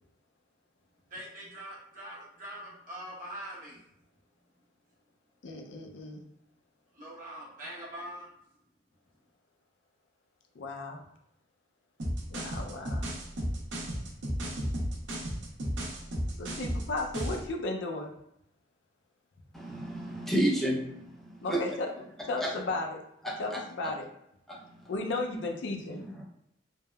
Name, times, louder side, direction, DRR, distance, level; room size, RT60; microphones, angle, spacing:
voice 1, 1.1-3.8 7.0-8.3, right 1 dB, 45° right, -6 dB, 0.9 m, -43 dB
voice 2, 5.4-6.2 10.6-11.0 12.3-13.0 16.4-18.1 21.4-21.9 22.3-23.0 23.4-24.0 24.9-26.0, left 2 dB, 75° left, 2 dB, 0.5 m, -34 dB
sound 1, 12.0-17.5, equal, 75° right, 0.6 m, -33 dB
voice 3, 19.5-21.6 22.4-22.5 23.2-23.6 24.5-24.9 25.8-26.2, right 1 dB, ahead, -5 dB, 0.5 m, -32 dB
3.3 x 2.0 x 2.2 m, 0.77 s
head